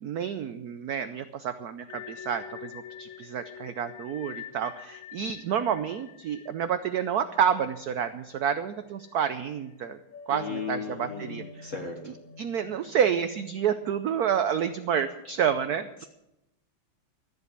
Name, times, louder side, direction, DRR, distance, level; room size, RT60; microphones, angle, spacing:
voice 1, 0.0-10.0 10.3-11.7 12.4-16.0, right 8 dB, 75° right, 10 dB, 0.9 m, -29 dB
sound 1, 1.9-8.7 9.0-9.1 9.7-15.0, left 8 dB, 65° left, 2.2 m, -46 dB
voice 2, 10.3-12.1, left 5 dB, 40° left, 2 dB, 1.7 m, -36 dB
13.5 x 8.1 x 8.1 m, 0.90 s
omnidirectional pair, 2.3 m